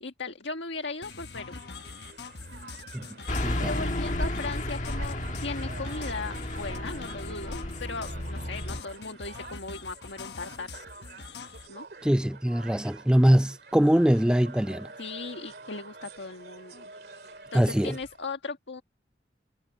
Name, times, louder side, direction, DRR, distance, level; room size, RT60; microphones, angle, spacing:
voice 1, 0.0-1.6 3.6-10.7 11.7-11.8 15.0-16.9 17.5-18.8, left 3 dB, 85° left, 1.6 m, -37 dB
Crowd, 0.9-18.3, right 3 dB, 60° right, 2.3 m, -48 dB
sound 1, 1.0-11.7, left 4 dB, 65° left, 1.3 m, -44 dB
Car passing by / Truck, 3.3-8.8, left 1 dB, 45° left, 1.6 m, -32 dB
voice 2, 12.0-14.9 17.5-17.9, equal, 5° right, 0.4 m, -22 dB
head